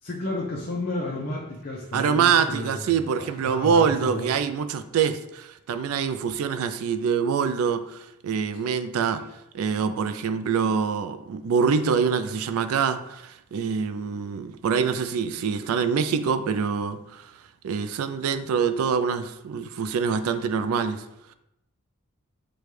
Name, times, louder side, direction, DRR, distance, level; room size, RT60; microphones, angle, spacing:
voice 1, 0.0-2.9 3.2-4.3 8.5-8.6, left 2 dB, 45° left, -2 dB, 0.5 m, -32 dB
voice 2, 1.9-9.2 9.5-17.3 17.6-21.0, right 6 dB, 80° right, 11 dB, 0.3 m, -25 dB
6.7 x 2.3 x 3.1 m, 0.85 s
head